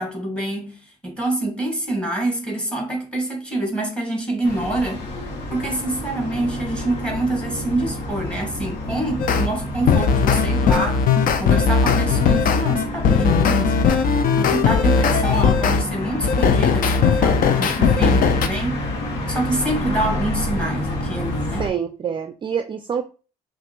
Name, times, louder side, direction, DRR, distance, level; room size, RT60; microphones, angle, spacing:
voice 1, 0.0-5.1 5.5-11.1 11.4-13.9 14.4-18.8 19.3-21.7, right 1 dB, 5° left, 1.8 m, -26 dB
sound 1, 4.4-21.7, left 1 dB, 85° left, 1.2 m, -29 dB
sound 2, 9.2-9.5 9.9-15.8 16.2-18.5, left 6 dB, 55° left, 0.6 m, -18 dB
voice 2, 21.6-23.0, right 7 dB, 30° right, 0.4 m, -26 dB
5.7 x 2.6 x 3.0 m
cardioid pair, 110°, 17 cm